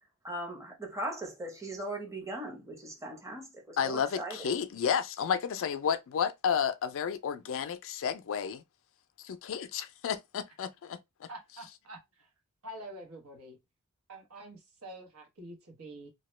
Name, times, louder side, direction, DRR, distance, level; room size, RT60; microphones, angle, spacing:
voice 1, 0.2-4.4, right 1 dB, 15° right, 0.8 m, -39 dB
voice 2, 3.8-8.6 9.2-11.3, left 7 dB, 60° left, 0.4 m, -32 dB
voice 3, 11.3-12.3 12.6-13.6 14.1-16.1, right 1 dB, 75° right, 1.1 m, -47 dB
2.8 x 2.2 x 3.1 m
head